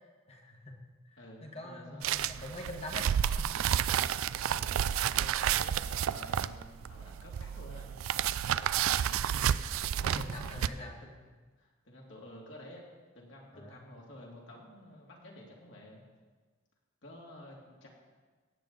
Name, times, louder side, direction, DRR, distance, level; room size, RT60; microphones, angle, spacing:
voice 1, 0.3-0.8 1.1-3.1 6.3-6.4 10.0-11.0 13.5-13.8, left 1 dB, 30° left, 2 dB, 1.4 m, -44 dB
voice 2, 1.2-2.4 4.5-9.6 10.0-11.2 11.6-12.9 13.1-16.0 17.0-17.9, left 1 dB, 60° left, -2 dB, 2.7 m, -51 dB
sound 1, 2.0-10.7, right 9 dB, 90° right, 0.4 m, -31 dB
17.0 x 8.6 x 4.0 m, 1.4 s
head